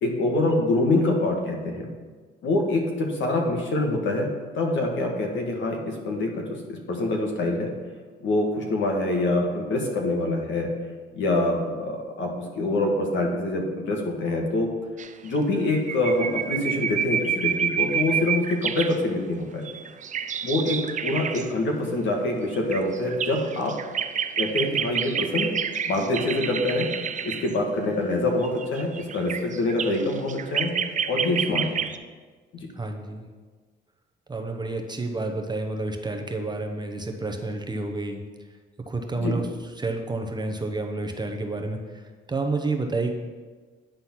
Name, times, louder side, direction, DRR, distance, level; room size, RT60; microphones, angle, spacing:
voice 1, 0.0-1.9 2.4-4.3 4.6-7.7 8.2-10.7 11.1-14.7 15.2-19.6 20.4-23.7 24.4-25.5 25.8-26.9 27.2-30.7 31.1-31.7 32.5-32.7 39.2-39.3, left 2 dB, 70° left, 1 dB, 1.7 m, -25 dB
sound 1, 15.0-15.1 15.4-15.5 15.7-19.0 19.7-21.5 22.5-27.5 28.4-32.0, right 7 dB, 40° right, 0.5 m, -29 dB
voice 2, 32.8-33.3 34.3-38.2 38.9-39.5 39.8-42.0 42.3-43.1, right 2 dB, 20° right, 3 dB, 0.9 m, -29 dB
9.9 x 3.9 x 5.9 m, 1.4 s
cardioid pair, 90°, 20 cm